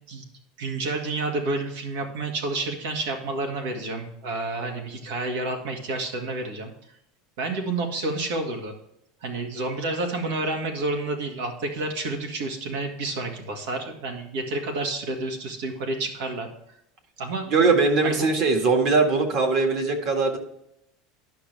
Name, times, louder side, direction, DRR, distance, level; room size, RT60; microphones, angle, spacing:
voice 1, 0.6-6.7 7.4-8.7 9.2-16.5 17.2-17.5 18.0-18.3, right 2 dB, 80° right, 3 dB, 1.9 m, -29 dB
voice 2, 17.5-20.4, right 4 dB, 45° right, 4 dB, 1.8 m, -21 dB
11.5 x 5.9 x 3.4 m, 0.78 s
supercardioid pair, 160°, 0 cm